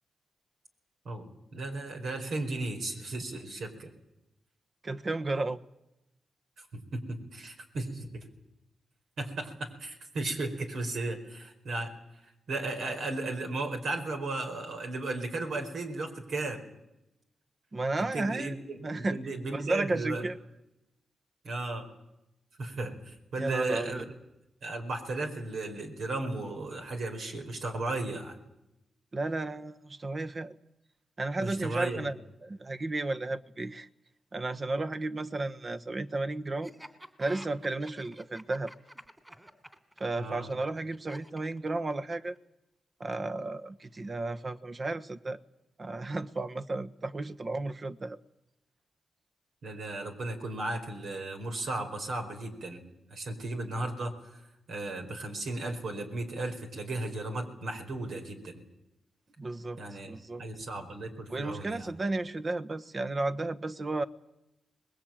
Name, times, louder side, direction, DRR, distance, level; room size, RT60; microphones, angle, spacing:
voice 1, 1.0-3.9 6.7-8.1 9.2-11.9 12.2-16.6 18.0-20.3 21.4-21.9 22.6-24.0 24.6-28.4 31.4-32.0 40.2-40.5 49.6-52.8 53.1-54.2 54.7-58.6 59.8-61.9, right 2 dB, 75° right, 4 dB, 4.7 m, -35 dB
voice 2, 4.8-5.6 17.7-18.5 18.8-19.2 19.5-20.4 23.4-24.1 29.1-30.5 31.2-32.2 32.4-33.9 34.3-36.7 37.2-38.7 40.0-42.4 43.0-45.4 45.8-48.2 59.4-59.8 60.1-60.4 61.3-64.0, right 2 dB, 40° right, 10 dB, 1.3 m, -33 dB
Laughter, 36.6-42.4, right 1 dB, 15° right, 3.1 m, -49 dB
24.5 x 20.5 x 9.0 m, 0.90 s
cardioid pair, 65°, 0 cm